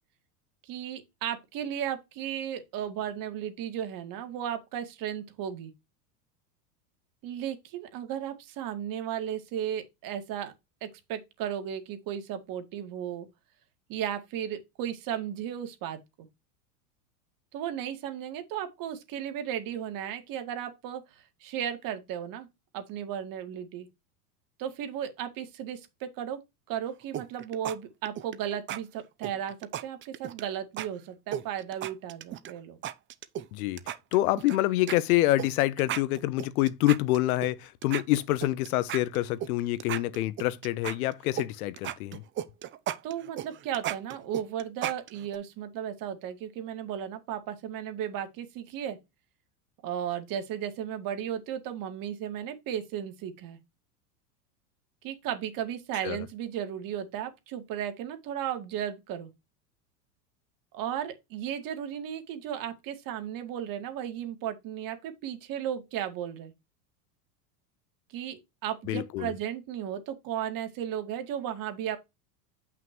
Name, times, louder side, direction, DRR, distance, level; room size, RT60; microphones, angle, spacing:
voice 1, 0.6-5.7 7.2-10.5 10.8-13.3 13.9-16.3 17.5-22.5 22.7-23.9 24.6-26.4 26.7-29.6 29.8-32.8 43.0-49.0 49.8-53.6 55.0-59.3 60.7-66.5 68.1-72.0, right 10 dB, 45° right, 2.0 m, -35 dB
sound 1, 27.1-27.8 28.1-28.4 28.7-28.8 29.2-30.4 30.8-30.9 31.3-32.5 32.8-33.5 33.8-34.6 34.9-35.0 35.4-35.5 35.8-37.5 37.8-39.5 39.8-41.5 41.8-45.4, right 11 dB, 25° right, 0.6 m, -35 dB
voice 2, 34.1-42.2 56.0-56.2 68.9-69.3, left 16 dB, 70° left, 1.0 m, -26 dB
7.6 x 6.0 x 3.0 m
supercardioid pair, 115°, 46 cm